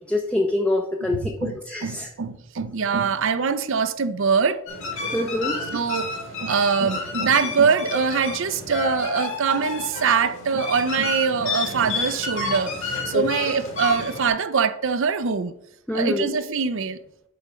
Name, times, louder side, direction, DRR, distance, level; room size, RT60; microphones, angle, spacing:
voice 1, 0.1-2.1 5.1-5.6 13.1-13.2 15.9-16.3, left 1 dB, 5° left, 0.5 m, -25 dB
voice 2, 1.0-4.6 5.7-6.1 6.4-15.5 15.9-17.0, right 5 dB, 60° right, 0.6 m, -23 dB
sound 1, 4.7-14.3, left 4 dB, 60° left, 2.4 m, -30 dB
8.4 x 4.3 x 5.1 m
head